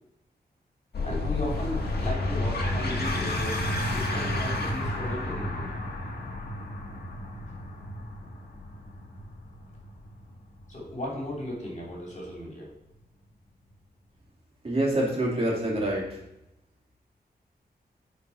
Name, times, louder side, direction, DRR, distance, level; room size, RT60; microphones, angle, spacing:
sound 1, 0.9-12.0, left 1 dB, 70° left, 1.6 m, -31 dB
voice 1, 1.0-3.6 3.9-5.7 10.7-12.7, left 1 dB, 45° left, -4 dB, 3.0 m, -36 dB
voice 2, 14.6-16.2, right 1 dB, 35° right, -4 dB, 2.6 m, -26 dB
10.5 x 4.7 x 4.2 m, 0.84 s
wide cardioid pair, 105°, 17 cm